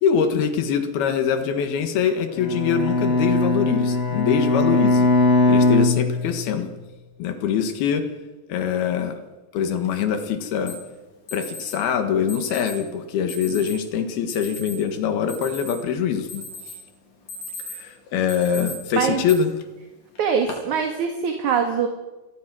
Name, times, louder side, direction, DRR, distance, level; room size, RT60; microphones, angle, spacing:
voice 1, 0.0-5.1 5.5-6.7 7.2-8.1 8.5-9.2 9.5-10.8 11.3-16.4 17.6-19.5, left 7 dB, 90° left, 7 dB, 3.6 m, -23 dB
Bowed string instrument, 2.3-6.7, left 2 dB, 25° left, 1.4 m, -20 dB
Alarm, 10.7-10.8 11.3-11.8 12.3-12.8 13.3-13.8 14.3-14.7 15.1-15.9 16.3-16.8 17.1-17.9 18.3-18.7 19.3-19.4 20.2-20.5, left 3 dB, 55° left, 5.6 m, -36 dB
voice 2, 18.9-19.3 20.2-21.9, right 6 dB, 60° right, 4 dB, 3.0 m, -23 dB
29.0 x 23.0 x 6.2 m, 1.2 s
omnidirectional pair, 4.3 m